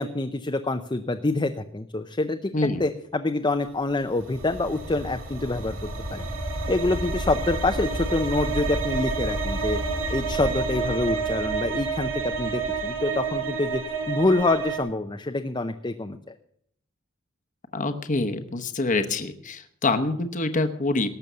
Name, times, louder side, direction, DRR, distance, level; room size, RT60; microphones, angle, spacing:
voice 1, 0.0-2.5 2.8-6.3 6.7-9.8 10.1-13.8 14.1-16.2, left 2 dB, 20° left, 6 dB, 0.6 m, -26 dB
sound 1, 4.0-14.8, right 4 dB, 70° right, 2.1 m, -29 dB
voice 2, 17.7-21.1, left 2 dB, 40° left, 7 dB, 1.0 m, -26 dB
18.5 x 6.9 x 6.8 m, 0.69 s
head